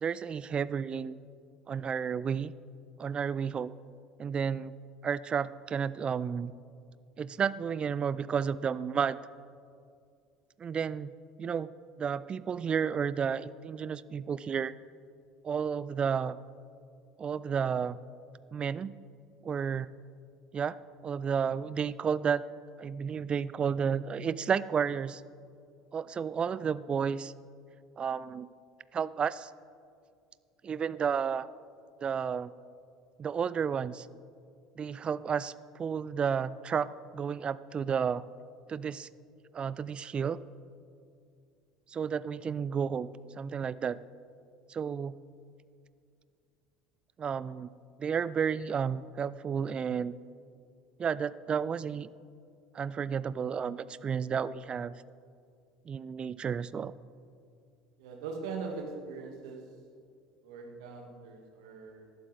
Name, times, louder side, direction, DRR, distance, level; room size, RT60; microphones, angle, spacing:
voice 1, 0.0-1.2 1.7-2.5 3.0-3.7 4.2-4.7 5.0-6.5 7.2-9.2 10.6-11.1 11.4-11.7 12.0-14.7 15.4-16.4 17.2-18.0 18.5-18.9 19.4-19.9 20.5-20.8 21.0-22.4 22.8-25.2 25.9-27.3 28.0-28.5 28.9-29.5 30.6-31.5 32.0-32.5 33.2-34.1 34.8-38.2 38.7-39.1 39.5-40.4 41.9-44.0 44.7-45.2 47.2-47.7 48.0-50.2 51.0-52.1 52.7-54.9 55.9-56.9, right 7 dB, 30° right, 18 dB, 0.4 m, -32 dB
voice 2, 58.0-59.6 60.4-62.1, right 4 dB, 65° right, 2 dB, 1.9 m, -41 dB
18.5 x 12.0 x 3.4 m, 2.3 s
figure-of-eight pair, 65°, 3 cm